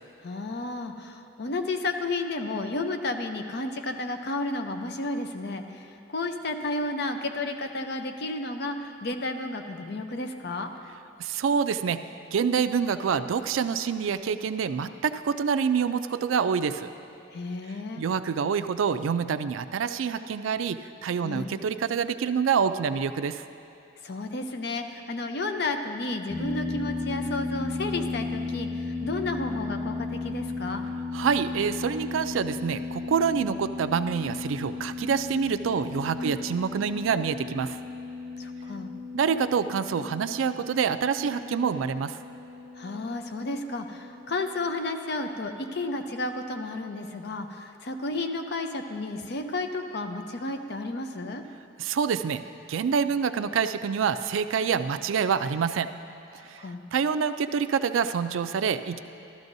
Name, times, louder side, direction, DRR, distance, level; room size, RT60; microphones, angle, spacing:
voice 1, 0.2-10.7 17.3-18.0 21.2-21.5 24.0-30.8 36.2-36.4 38.4-38.9 42.7-51.4 56.4-56.8, left 2 dB, 55° left, 6 dB, 0.6 m, -32 dB
voice 2, 11.2-16.9 18.0-23.4 31.1-37.8 39.1-42.2 51.8-52.4 52.7-55.9 56.5-56.6 56.9-59.0, right 6 dB, 90° right, 11 dB, 0.4 m, -26 dB
sound 1, 26.3-44.7, left 3 dB, 5° left, 0.6 m, -35 dB
13.5 x 13.0 x 2.6 m, 2.6 s
head